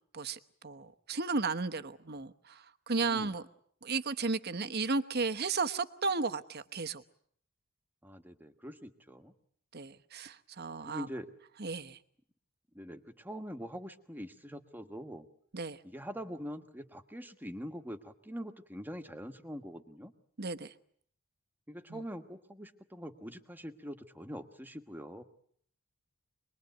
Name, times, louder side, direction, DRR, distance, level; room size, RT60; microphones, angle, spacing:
voice 1, 0.1-3.4 3.8-7.0 9.7-11.1 11.6-12.0 15.5-15.8 20.4-20.7, right 4 dB, 45° right, 1.0 m, -34 dB
voice 2, 3.0-3.3 8.0-9.3 10.8-11.3 12.7-15.3 15.8-20.1 21.7-25.2, equal, 10° right, 1.4 m, -44 dB
26.0 x 21.0 x 9.2 m
head